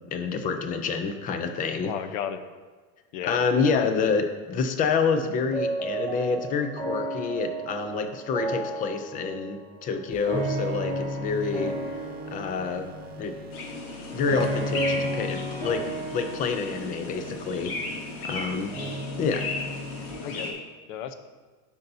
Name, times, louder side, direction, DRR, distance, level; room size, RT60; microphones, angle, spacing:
voice 1, 0.1-1.9 3.2-11.8 12.3-12.9 13.2-13.4 14.1-17.7 18.2-18.7 19.2-19.5, left 5 dB, 20° left, 7 dB, 0.3 m, -28 dB
voice 2, 1.8-2.4 3.1-3.6 20.2-20.6 20.9-21.1, left 8 dB, 65° left, 10 dB, 0.7 m, -33 dB
sound 1, 5.5-20.5, right 1 dB, 5° left, 2.0 m, -33 dB
sound 2, 10.1-20.1, right 1 dB, 20° right, 0.6 m, -48 dB
sound 3, 13.5-20.5, left 3 dB, 90° left, 1.5 m, -36 dB
12.0 x 5.5 x 2.6 m, 1.4 s
supercardioid pair, 145°, 43 cm